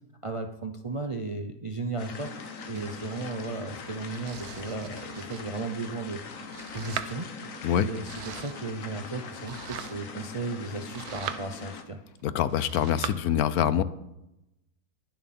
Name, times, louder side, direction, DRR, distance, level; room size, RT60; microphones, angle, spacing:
voice 1, 0.2-7.3 7.8-12.0, right 3 dB, 40° right, 5 dB, 0.4 m, -35 dB
sound 1, 2.0-11.8, left 4 dB, 60° left, 1.5 m, -41 dB
Domestic sounds home sounds, 2.7-13.1, right 9 dB, 85° right, 1.3 m, -42 dB
voice 2, 12.2-13.8, left 10 dB, 80° left, 15 dB, 1.1 m, -25 dB
21.0 x 7.3 x 4.2 m, 0.89 s
omnidirectional pair, 1.6 m